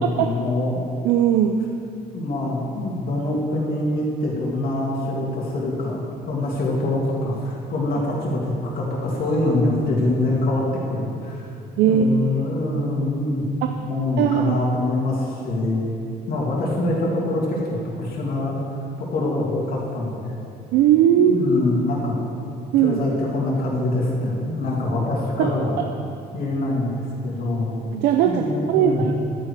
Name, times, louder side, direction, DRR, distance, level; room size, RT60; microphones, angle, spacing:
voice 1, 0.0-0.9 2.1-11.5 11.8-13.4 13.8-15.8 16.3-18.6 19.0-20.4 21.1-22.2 22.8-25.8 26.3-27.7 28.2-29.0, left 2 dB, 60° left, -4 dB, 2.7 m, -24 dB
voice 2, 1.0-1.6 11.8-12.4 13.6-13.7 14.2-14.5 20.7-21.4 22.7-23.0 25.4-25.5 27.9-29.1, right 9 dB, 90° right, 5 dB, 0.6 m, -18 dB
12.0 x 9.8 x 4.9 m, 2.5 s
cardioid pair, 110°, 17 cm